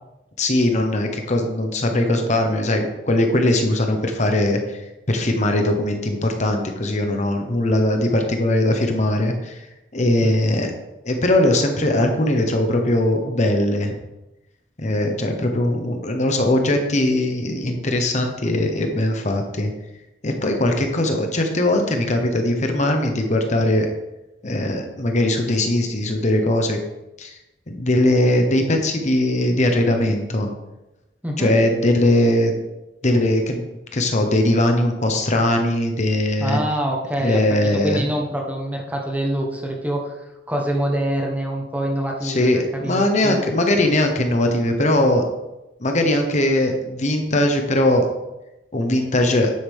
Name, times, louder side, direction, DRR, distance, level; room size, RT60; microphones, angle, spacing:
voice 1, 0.4-4.8 5.1-9.6 9.9-10.7 11.0-14.0 14.8-19.7 20.2-23.9 24.4-26.8 27.2-27.3 27.7-30.5 31.4-32.5 33.0-33.7 33.9-36.6 37.2-38.0 42.2-45.3 45.8-48.1 48.7-49.5, left 1 dB, 40° left, 4 dB, 1.1 m, -20 dB
voice 2, 31.2-31.6 36.4-43.4, right 1 dB, 10° right, 1 dB, 1.2 m, -25 dB
9.6 x 7.9 x 3.6 m, 0.97 s
head